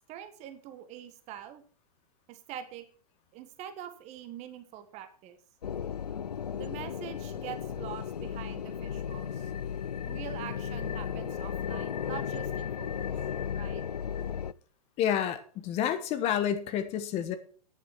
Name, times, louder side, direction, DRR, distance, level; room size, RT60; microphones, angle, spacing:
voice 1, 0.1-1.6 2.3-2.9 3.3-5.4 6.5-9.5 10.1-13.2 13.5-13.8, right 11 dB, 35° right, 9 dB, 1.6 m, -44 dB
sound 1, 5.6-14.5, left 8 dB, 90° left, 0.5 m, -35 dB
voice 2, 15.0-17.3, left 9 dB, 30° left, 11 dB, 1.2 m, -29 dB
9.7 x 7.4 x 6.0 m, 0.44 s
hypercardioid pair, 115°, 20 cm